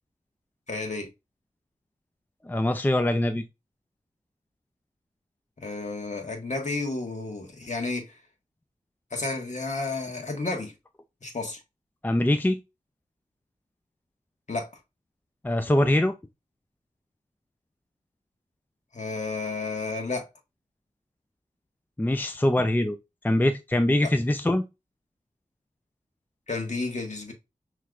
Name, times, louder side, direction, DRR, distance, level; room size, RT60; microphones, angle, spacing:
voice 1, 0.7-1.1 5.6-8.2 9.1-10.7 11.2-11.6 14.5-14.7 18.9-20.3 26.5-27.3, left 3 dB, 60° left, 1.6 m, -31 dB
voice 2, 2.4-3.4 12.0-12.6 15.4-16.1 22.0-23.0 23.2-24.6, left 1 dB, 15° left, 0.5 m, -23 dB
5.9 x 3.2 x 2.4 m
wide cardioid pair, 55°, 14 cm